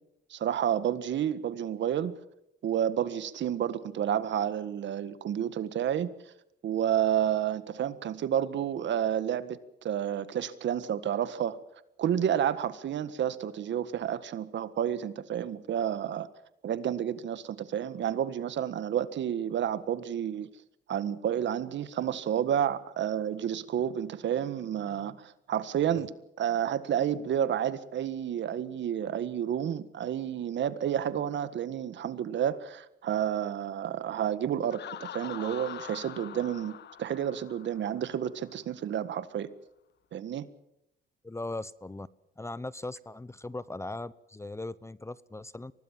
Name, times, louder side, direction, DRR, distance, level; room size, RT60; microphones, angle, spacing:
voice 1, 0.3-2.1 2.6-6.1 6.6-11.6 12.0-16.3 16.6-20.5 20.9-26.1 26.4-39.5 40.1-40.5, right 9 dB, 65° right, 14 dB, 1.7 m, -30 dB
Laughter, 34.7-38.4, left 10 dB, 60° left, 1.0 m, -44 dB
voice 2, 41.2-42.1 42.4-45.7, left 2 dB, 15° left, 19 dB, 0.8 m, -39 dB
24.5 x 19.0 x 7.4 m, 0.83 s
cardioid pair, 90°, 20 cm